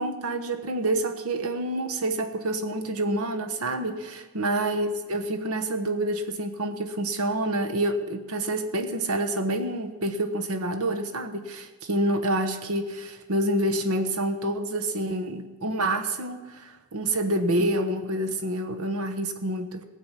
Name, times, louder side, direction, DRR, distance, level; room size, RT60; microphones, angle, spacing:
voice 1, 0.0-19.8, right 1 dB, 85° right, 7 dB, 1.2 m, -27 dB
18.0 x 7.7 x 5.9 m, 1.3 s
head